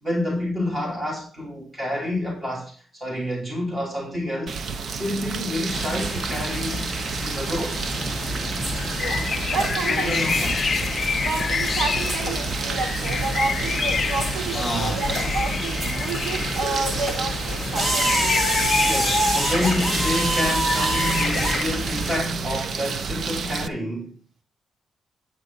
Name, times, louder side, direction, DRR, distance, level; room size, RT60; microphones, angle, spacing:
voice 1, 0.0-6.9 7.2-7.9 9.9-10.7 14.5-15.7 18.7-24.2, left 1 dB, 15° right, 3.3 m, -29 dB
sound 1, 4.5-23.7, right 5 dB, 50° right, 0.6 m, -31 dB
sound 2, 5.7-22.2, right 1 dB, 30° right, 2.7 m, -28 dB
sound 3, 7.8-21.6, left 5 dB, 35° left, 0.4 m, -29 dB
voice 2, 8.9-10.2 11.2-18.5, right 3 dB, 70° right, 2.7 m, -30 dB
8.9 x 8.7 x 3.9 m
wide cardioid pair, 175°, 0 cm